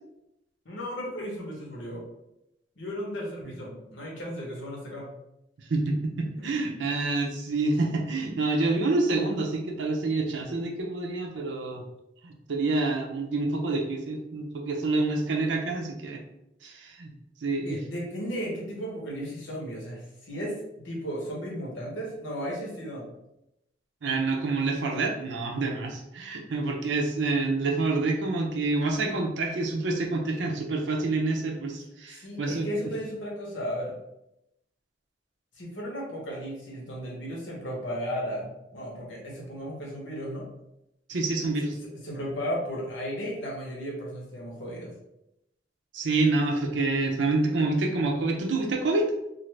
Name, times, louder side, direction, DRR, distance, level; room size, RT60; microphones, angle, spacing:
voice 1, 0.6-2.0 2.8-5.1 6.4-6.5 17.6-23.1 32.2-33.9 35.6-40.5 41.8-44.9, equal, 90° left, -3 dB, 1.0 m, -35 dB
voice 2, 5.7-11.8 12.2-16.2 16.6-17.1 17.4-17.8 24.0-32.7 41.1-41.7 45.9-49.1, right 3 dB, 75° right, 1 dB, 0.5 m, -27 dB
2.5 x 2.5 x 3.2 m, 0.86 s
head